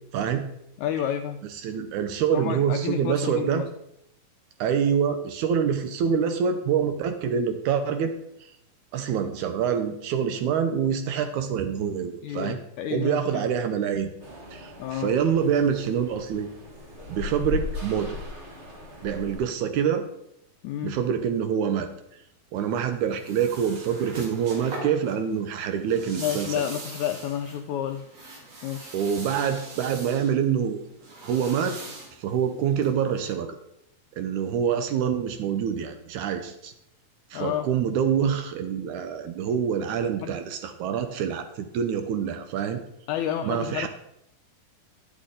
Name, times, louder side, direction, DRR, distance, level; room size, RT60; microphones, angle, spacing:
voice 1, 0.1-0.5 1.6-3.7 4.6-8.1 8.4-8.5 8.9-12.6 12.9-14.1 14.5-16.5 17.1-18.2 19.0-20.1 20.8-21.9 22.5-26.5 28.9-30.8 31.2-31.8 32.2-33.6 34.2-36.7 37.3-42.8 43.4-43.9, right 8 dB, 75° right, 8 dB, 1.9 m, -26 dB
voice 2, 0.8-1.4 2.3-3.7 12.2-13.5 14.8-15.1 20.6-21.0 26.2-28.1 28.6-28.9 37.3-37.7 40.2-40.4 43.1-43.9, left 10 dB, 85° left, 6 dB, 1.7 m, -30 dB
sound 1, 14.2-19.4, left 3 dB, 35° right, 1.2 m, -37 dB
sound 2, 22.6-33.3, right 2 dB, 55° right, 3.0 m, -42 dB
10.0 x 8.4 x 3.8 m, 0.77 s
omnidirectional pair, 3.8 m